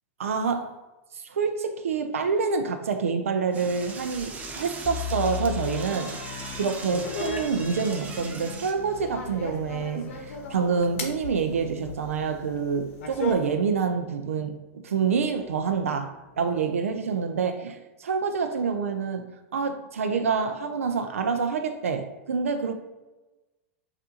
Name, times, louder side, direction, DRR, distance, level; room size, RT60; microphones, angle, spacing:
voice 1, 0.2-0.7 1.1-6.2 6.5-14.6 14.8-22.7, right 5 dB, 90° right, 7 dB, 0.4 m, -27 dB
Door / Toilet flush, 3.5-8.7, right 3 dB, 20° right, 0.6 m, -39 dB
sound 1, 4.8-14.6 14.9-15.0 15.5-15.8, left 9 dB, 40° left, 0.4 m, -40 dB
sound 2, 6.4-13.3, left 2 dB, 75° left, 0.8 m, -37 dB
5.5 x 2.5 x 2.7 m, 1.1 s
hypercardioid pair, 110°, 7 cm